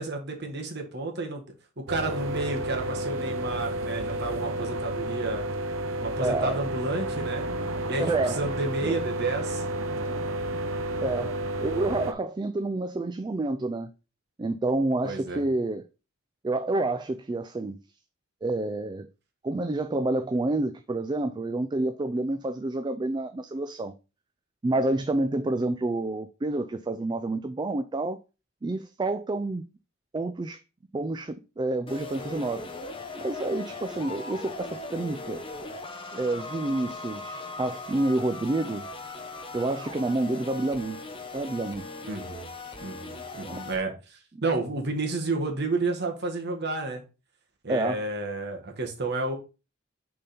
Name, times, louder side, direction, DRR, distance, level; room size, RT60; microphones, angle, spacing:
voice 1, 0.0-1.4 1.8-5.5 6.0-7.5 7.9-8.0 8.4-9.6 15.0-15.4 42.0-42.5 42.8-47.0 47.6-49.4, right 3 dB, 55° right, 1.6 m, -31 dB
sound 1, 1.9-12.1, right 1 dB, 75° right, 0.8 m, -31 dB
voice 2, 6.2-6.6 8.0-8.4 8.8-9.0 11.0-13.9 14.4-15.9 16.4-17.8 18.4-19.1 19.4-23.9 24.6-28.2 28.6-29.6 30.1-30.6 30.9-32.7 33.2-35.4 36.1-38.9 39.5-41.0 41.3-41.9 43.4-43.6 47.7-48.0, right 2 dB, 20° right, 0.3 m, -28 dB
sound 2, 31.9-43.8, left 3 dB, 25° left, 0.9 m, -39 dB
6.5 x 3.9 x 4.2 m
head